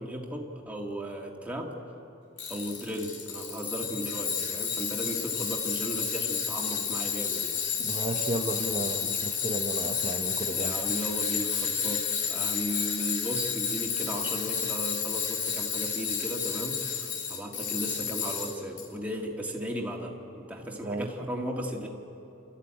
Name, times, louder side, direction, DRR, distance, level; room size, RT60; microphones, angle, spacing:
voice 1, 0.0-1.8 2.5-7.6 10.5-21.9, equal, 10° right, 0 dB, 1.9 m, -36 dB
Tools, 2.4-18.8, left 6 dB, 60° left, 2.6 m, -31 dB
voice 2, 7.8-10.7 20.8-21.1, right 1 dB, 35° right, 1 dB, 0.9 m, -33 dB
28.0 x 13.0 x 8.7 m, 3.0 s
head